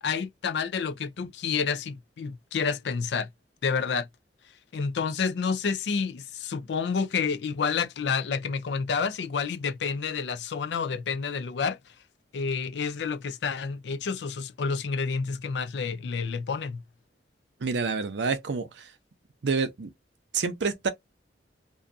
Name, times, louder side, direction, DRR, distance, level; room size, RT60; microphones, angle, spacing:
voice 1, 0.0-3.3 3.6-4.1 4.7-11.8 12.3-16.8, left 5 dB, 70° left, 0.4 m, -29 dB
voice 2, 17.6-18.9 19.4-19.9 20.3-20.9, right 5 dB, 85° right, 0.6 m, -28 dB
2.6 x 2.3 x 2.5 m
head